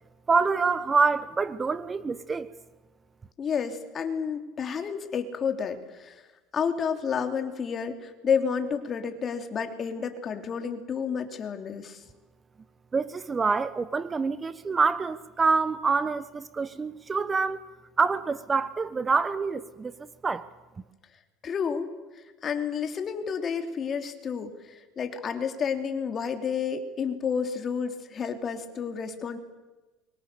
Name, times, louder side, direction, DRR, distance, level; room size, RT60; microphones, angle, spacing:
voice 1, 0.3-2.5 12.9-17.6 18.0-20.0 20.2-20.4, right 4 dB, 25° right, 14 dB, 1.0 m, -26 dB
voice 2, 3.4-6.2 6.5-12.0 21.4-21.9 22.4-29.4, left 6 dB, 35° left, 6 dB, 3.2 m, -30 dB
28.5 x 23.5 x 6.9 m, 1.2 s
supercardioid pair, 105°, 0 cm